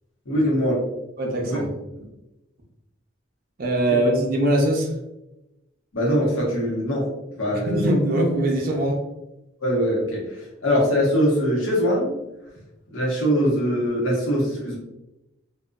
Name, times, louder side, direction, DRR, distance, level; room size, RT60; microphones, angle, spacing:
voice 1, 0.3-0.7 1.4-1.6 2.0-2.1 5.9-7.1 7.4-7.9 9.6-12.1 12.9-14.8, equal, 90° left, -4 dB, 0.9 m, -22 dB
voice 2, 1.2-1.7 3.6-4.9 7.5-9.0, right 1 dB, 45° right, 1 dB, 0.5 m, -22 dB
2.5 x 2.2 x 2.2 m, 0.94 s
head